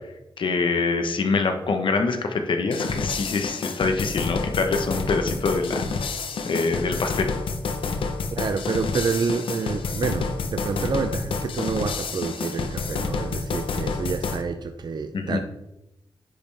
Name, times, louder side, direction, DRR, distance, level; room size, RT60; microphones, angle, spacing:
voice 1, 0.4-5.8 6.4-7.3 15.1-15.4, left 4 dB, 70° left, 1.1 m, -25 dB
sound 1, 2.7-14.4, left 4 dB, 90° left, 0.8 m, -29 dB
voice 2, 8.3-15.4, right 5 dB, 55° right, 0.5 m, -28 dB
10.0 x 5.4 x 3.4 m
wide cardioid pair, 85°, 9 cm